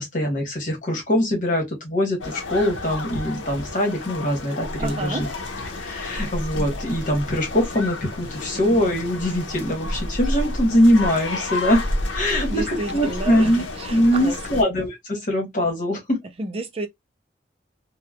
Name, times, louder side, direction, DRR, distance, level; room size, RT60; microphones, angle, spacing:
voice 1, 0.0-5.3 5.8-11.8 12.1-13.6 13.9-16.2, equal, 40° left, 1.2 m, -22 dB
sound 1, 2.2-14.6, left 1 dB, 80° left, 0.7 m, -30 dB
voice 2, 4.8-5.2 12.2-13.5 13.8-14.4 16.4-16.9, right 2 dB, 30° right, 0.4 m, -30 dB
2.8 x 2.2 x 2.3 m
head